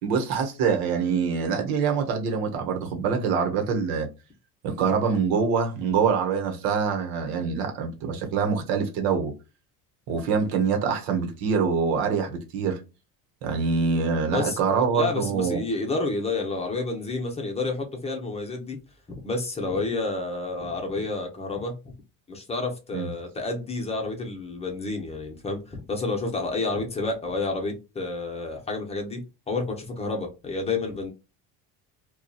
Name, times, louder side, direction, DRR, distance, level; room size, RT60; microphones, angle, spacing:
voice 1, 0.0-4.1 4.6-9.3 10.1-12.8 13.4-15.6 22.9-23.1, right 5 dB, 80° right, 1.0 m, -25 dB
voice 2, 14.3-18.8 19.1-21.7 22.3-29.2 29.5-31.1, left 3 dB, 15° left, 0.7 m, -30 dB
2.7 x 2.3 x 2.3 m
cardioid pair, 125°, 35 cm